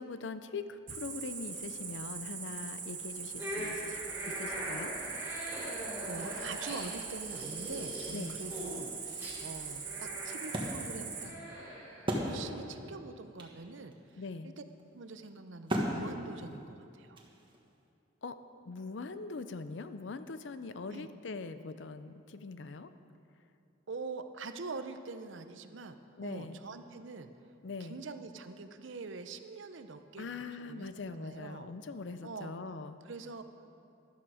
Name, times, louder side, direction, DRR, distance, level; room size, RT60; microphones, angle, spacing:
voice 1, 0.0-4.0 4.4-4.9 8.1-8.4 14.2-14.5 18.2-18.4 18.6-22.9 26.2-26.6 27.6-28.0 30.2-33.0, left 4 dB, 65° left, 11 dB, 0.5 m, -42 dB
Cricket, 0.9-11.2, right 6 dB, 45° right, 2.3 m, -42 dB
sound 1, 3.4-12.5, equal, 10° right, 3.7 m, -42 dB
voice 2, 5.8-11.3 12.0-14.6 14.9-17.2 20.9-21.1 23.9-27.3 27.8-31.7 32.2-32.5 33.0-33.4, right 4 dB, 70° right, 9 dB, 0.7 m, -44 dB
Wood, 8.4-12.8 13.1-13.2 13.4-17.8, equal, 25° right, 1.4 m, -38 dB
13.0 x 11.5 x 4.9 m, 2.7 s
head